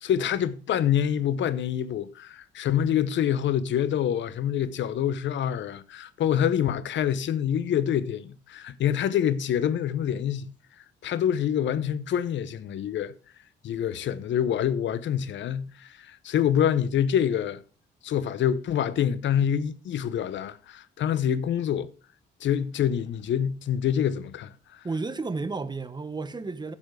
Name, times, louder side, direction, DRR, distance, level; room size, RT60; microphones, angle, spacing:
voice 1, 0.0-10.5 11.0-13.1 13.6-17.6 18.0-21.9 22.4-24.8, left 9 dB, 70° left, 0.8 m, -26 dB
voice 2, 24.8-26.7, right 3 dB, 20° right, 1.0 m, -32 dB
10.5 x 7.2 x 4.7 m
cardioid pair, 90°, 20 cm